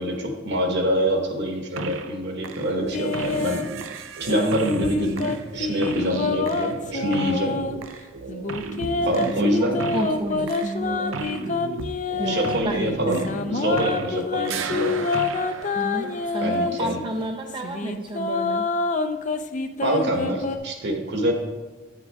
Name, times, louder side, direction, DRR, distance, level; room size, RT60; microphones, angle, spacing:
voice 1, 0.0-3.6 4.2-7.6 9.0-9.8 12.2-13.2 13.5-15.0 16.4-17.0 19.8-21.3, equal, 60° right, 3 dB, 1.3 m, -25 dB
sound 1, 1.8-2.2 2.4-14.2 14.4-16.6, right 4 dB, 75° right, 0.5 m, -35 dB
sound 2, 2.9-3.7 4.3-7.8 8.3-12.6 13.1-16.9 17.5-20.6, left 4 dB, 40° left, 0.5 m, -27 dB
voice 2, 9.2-11.6 12.2-12.4 12.6-13.3 15.7-18.7, right 2 dB, 25° right, 4 dB, 0.4 m, -31 dB
9.0 x 7.4 x 3.5 m, 1.2 s
head